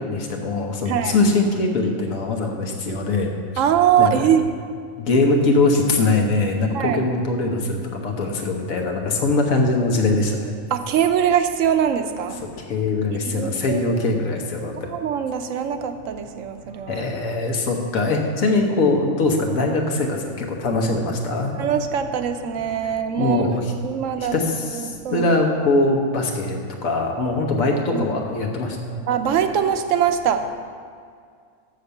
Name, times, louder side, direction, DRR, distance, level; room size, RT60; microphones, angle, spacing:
voice 1, 0.0-3.6 4.0-4.3 5.0-10.5 12.6-14.9 16.9-21.6 22.8-22.9 23.2-23.7 24.2-29.0, left 2 dB, 80° left, 1 dB, 1.4 m, -22 dB
voice 2, 3.6-4.4 6.7-7.0 10.7-12.4 13.4-13.8 14.9-17.0 18.4-18.6 21.6-23.5 23.8-24.3 24.7-25.3 27.9-28.2 29.1-30.5, right 8 dB, 75° right, 7 dB, 0.9 m, -22 dB
6.6 x 6.5 x 6.9 m, 2.1 s
omnidirectional pair, 1.4 m